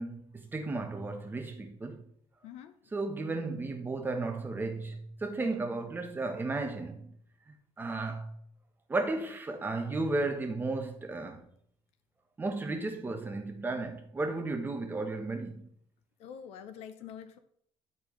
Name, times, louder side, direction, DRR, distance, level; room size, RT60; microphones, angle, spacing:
voice 1, 0.0-2.0 2.9-7.1 7.5-8.3 8.9-11.5 12.4-15.7, right 3 dB, 20° right, 1.0 m, -34 dB
voice 2, 2.4-2.8 5.3-5.5 14.3-14.4 16.2-17.4, left 8 dB, 80° left, 0.6 m, -46 dB
10.0 x 4.2 x 3.2 m
cardioid pair, 125°, 11 cm